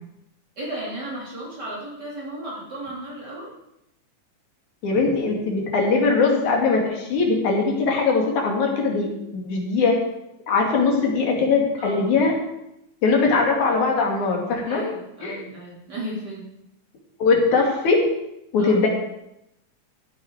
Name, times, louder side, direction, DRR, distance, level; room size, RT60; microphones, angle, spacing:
voice 1, 0.6-3.5 11.8-12.1 14.6-16.5 18.6-18.8, right 1 dB, 35° right, -6 dB, 3.9 m, -34 dB
voice 2, 4.8-9.1 9.3-10.0 10.5-12.3 13.0-14.8 15.2-15.4 17.2-18.0 18.5-18.9, left 4 dB, 80° left, 0 dB, 3.9 m, -20 dB
14.5 x 9.2 x 4.8 m, 0.84 s
omnidirectional pair, 3.3 m